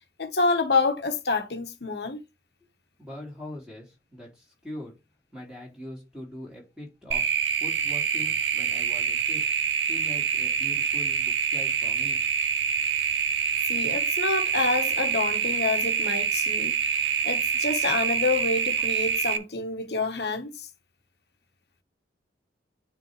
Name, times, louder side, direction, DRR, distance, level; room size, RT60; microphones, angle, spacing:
voice 1, 0.2-2.2 13.7-20.7, left 3 dB, 60° left, 1.2 m, -28 dB
voice 2, 3.0-4.9 5.3-7.3 7.6-9.5 9.9-12.2, left 1 dB, 5° right, 3.7 m, -42 dB
sound 1, 7.1-19.4, right 7 dB, 75° right, 0.7 m, -26 dB
9.6 x 3.7 x 3.2 m
head